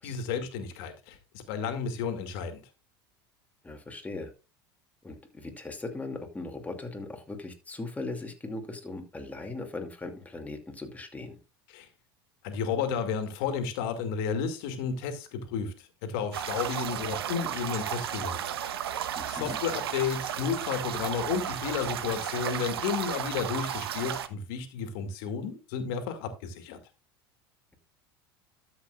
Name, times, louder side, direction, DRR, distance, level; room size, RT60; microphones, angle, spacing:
voice 1, 0.0-2.6 11.7-11.9 12.4-18.5 19.3-26.8, left 6 dB, 65° left, 2.2 m, -32 dB
voice 2, 3.6-4.3 5.0-11.4 19.2-19.6, left 2 dB, 10° left, 2.5 m, -39 dB
sound 1, 16.3-24.3, right 10 dB, 80° right, 0.9 m, -34 dB
13.0 x 7.8 x 2.5 m
hypercardioid pair, 85°, 13 cm